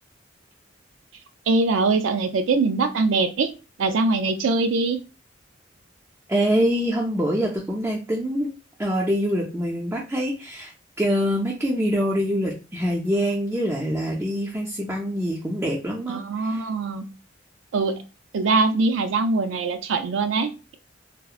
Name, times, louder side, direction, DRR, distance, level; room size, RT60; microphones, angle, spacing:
voice 1, 1.5-3.5 3.8-5.0 16.1-17.0 17.7-18.0 18.3-20.7, right 3 dB, 80° right, 8 dB, 0.4 m, -22 dB
voice 2, 6.3-8.5 8.8-10.7 11.0-16.2 16.5-16.6, equal, 15° right, -3 dB, 0.3 m, -24 dB
2.7 x 2.0 x 2.3 m, 0.30 s
head